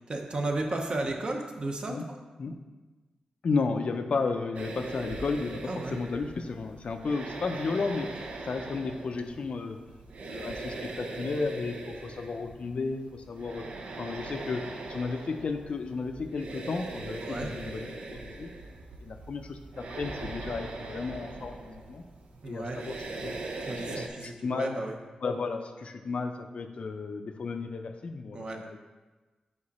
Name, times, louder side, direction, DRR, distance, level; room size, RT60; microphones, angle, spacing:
voice 1, 0.1-2.2 5.7-6.0 17.2-17.5 22.4-22.8 23.7-25.0 28.3-28.6, right 2 dB, 45° right, 3 dB, 0.7 m, -33 dB
voice 2, 3.4-9.8 10.3-13.7 14.0-14.6 14.9-18.5 19.0-22.0 22.4-23.0 23.2-23.3 23.7-24.8 25.2-28.9, left 4 dB, 60° left, 6 dB, 0.4 m, -33 dB
sound 1, 4.5-24.1, right 3 dB, 85° right, 0.6 m, -41 dB
5.2 x 4.9 x 4.1 m, 1.2 s
wide cardioid pair, 115°, 2 cm